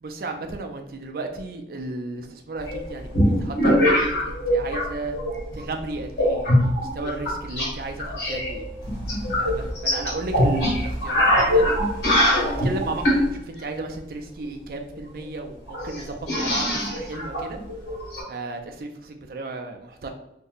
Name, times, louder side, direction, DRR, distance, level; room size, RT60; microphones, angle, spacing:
voice 1, 0.0-5.2 5.5-8.7 9.4-11.7 12.4-17.6 18.3-20.1, right 2 dB, 55° right, 4 dB, 0.4 m, -34 dB
sound 1, 2.7-4.9 5.1-5.6 6.2-7.7 8.0-13.3 14.9-15.0 15.2-15.3 15.7-18.2, left 1 dB, 75° left, 1.4 m, -22 dB
2.7 x 2.1 x 3.8 m, 0.85 s
head